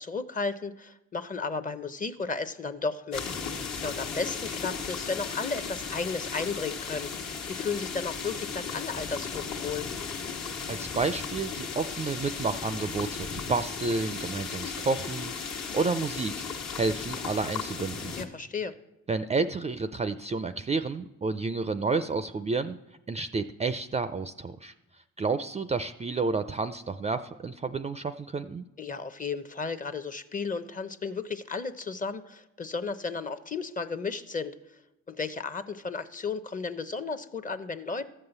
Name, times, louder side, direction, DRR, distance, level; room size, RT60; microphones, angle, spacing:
voice 1, 0.0-7.1 7.5-9.9 18.2-18.7 28.8-34.5 35.1-38.1, left 4 dB, 25° left, 11 dB, 0.7 m, -34 dB
sound 1, 3.1-18.2, left 5 dB, 70° left, 1.4 m, -36 dB
voice 2, 10.7-16.4 16.8-18.1 19.1-22.8 23.1-24.7 25.2-28.6, right 4 dB, 20° right, 11 dB, 0.4 m, -30 dB
13.0 x 5.5 x 8.0 m, 0.93 s
cardioid pair, 90°, 30 cm